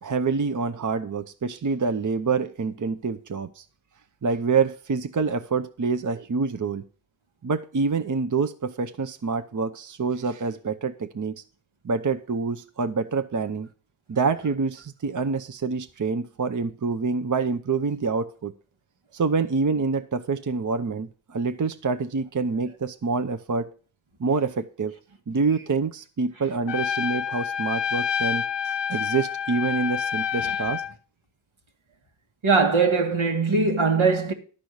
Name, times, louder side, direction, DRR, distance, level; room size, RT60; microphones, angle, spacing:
voice 1, 0.0-3.6 4.2-6.8 7.4-11.4 11.8-13.7 14.1-18.5 19.1-23.7 24.2-24.9 25.3-30.8, right 4 dB, 40° right, 0.7 m, -26 dB
Trumpet, 26.7-30.9, left 7 dB, 65° left, 0.6 m, -28 dB
voice 2, 32.4-34.3, right 4 dB, 80° right, 1.8 m, -21 dB
11.5 x 4.5 x 8.0 m
cardioid pair, 45°, 47 cm